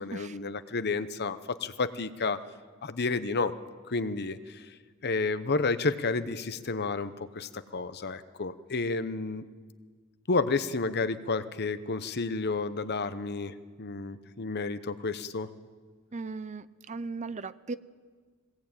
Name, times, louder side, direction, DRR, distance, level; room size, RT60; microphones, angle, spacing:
voice 1, 0.0-2.4 2.8-3.5 3.9-4.7 5.0-9.5 10.3-15.5, left 3 dB, 50° left, 12 dB, 0.9 m, -31 dB
voice 2, 16.1-17.7, right 4 dB, 35° right, 14 dB, 0.6 m, -37 dB
21.5 x 19.0 x 8.9 m, 1.5 s
head